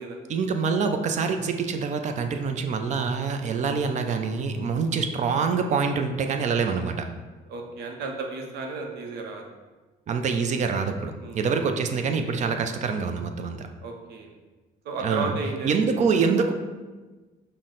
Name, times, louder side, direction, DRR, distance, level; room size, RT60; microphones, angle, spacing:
voice 1, 0.3-7.1 10.1-13.7 15.0-15.3 15.6-16.5, right 5 dB, 45° right, 6 dB, 0.5 m, -25 dB
voice 2, 7.5-9.4 11.2-11.4 13.8-14.3 14.8-15.9, right 4 dB, 80° right, 2 dB, 0.8 m, -33 dB
5.8 x 2.1 x 3.8 m, 1.3 s
cardioid pair, 110°, 17 cm